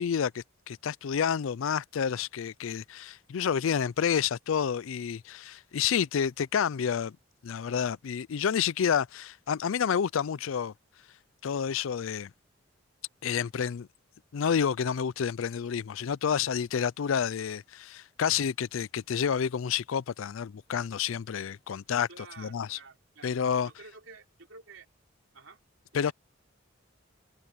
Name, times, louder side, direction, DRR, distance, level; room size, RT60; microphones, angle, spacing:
voice 1, 0.0-7.2 7.4-10.7 11.4-12.3 13.2-13.9 14.3-22.1 22.4-22.8 23.2-23.7 25.9-26.1, left 7 dB, 70° left, 0.4 m, -29 dB
voice 2, 22.1-23.3 23.6-24.9 25.3-25.6 25.9-26.1, right 4 dB, 70° right, 3.4 m, -50 dB
head